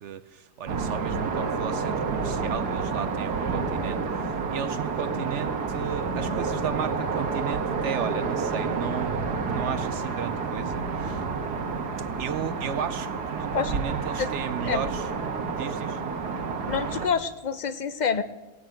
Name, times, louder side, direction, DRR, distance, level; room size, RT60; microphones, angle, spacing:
voice 1, 0.0-11.2 12.2-15.1 15.5-16.0, right 8 dB, 60° right, 13 dB, 0.8 m, -34 dB
sound 1, 0.7-17.1, right 4 dB, 80° right, 1.8 m, -29 dB
voice 2, 16.7-18.2, left 6 dB, 70° left, 12 dB, 0.4 m, -27 dB
18.0 x 7.9 x 8.9 m, 1.2 s
omnidirectional pair, 1.7 m